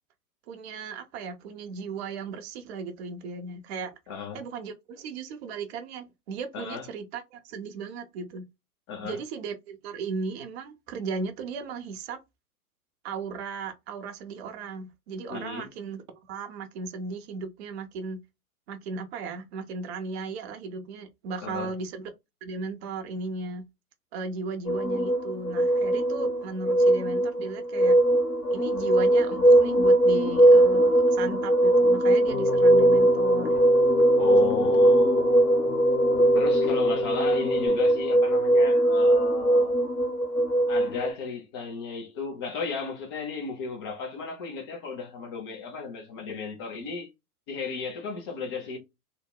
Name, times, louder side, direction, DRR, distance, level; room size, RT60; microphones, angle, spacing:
voice 1, 0.5-3.9 4.3-8.4 9.0-12.2 13.0-16.0 16.3-18.2 18.7-22.1 22.4-23.6 24.1-28.0 28.5-33.6 34.4-34.8, right 4 dB, 45° right, 0.6 m, -36 dB
voice 2, 4.1-4.4 6.5-6.9 8.9-9.2 15.3-15.7 21.4-21.7 34.2-35.5 36.3-39.8 40.7-47.1 47.5-48.8, left 5 dB, 20° left, 0.3 m, -34 dB
sound 1, 24.7-41.1, right 1 dB, 85° left, 1.0 m, -21 dB
Keyboard (musical), 32.3-37.7, left 7 dB, 65° left, 1.3 m, -31 dB
2.8 x 2.0 x 2.2 m
figure-of-eight pair, 100°, 45 cm